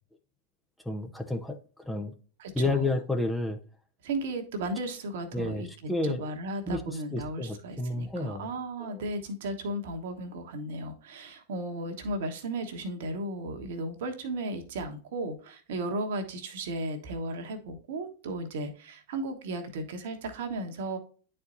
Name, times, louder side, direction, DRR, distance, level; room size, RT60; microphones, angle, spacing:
voice 1, 0.8-2.1 2.5-3.6 5.3-6.3 6.7-8.5 8.8-9.0, left 2 dB, 5° left, 0.7 m, -31 dB
voice 2, 2.4-3.0 4.0-5.7 6.0-21.0, right 1 dB, 55° right, 1.2 m, -35 dB
10.5 x 4.4 x 2.6 m
figure-of-eight pair, 90°, 0 cm